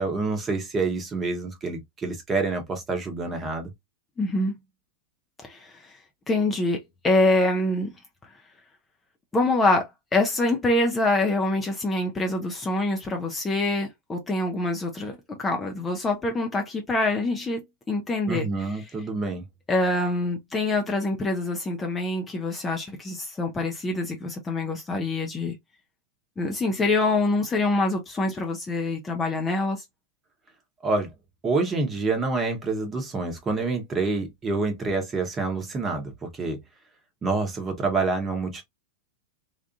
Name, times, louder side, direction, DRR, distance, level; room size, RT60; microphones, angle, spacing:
voice 1, 0.0-3.7 18.3-19.4 30.8-31.1 31.4-36.6 37.2-38.6, right 3 dB, 20° right, 1.1 m, -27 dB
voice 2, 4.2-4.5 5.4-5.9 6.3-7.9 9.3-17.6 17.9-18.5 19.7-25.6 26.4-29.8, left 2 dB, 15° left, 0.6 m, -25 dB
3.4 x 2.5 x 2.6 m
figure-of-eight pair, 90°, 0 cm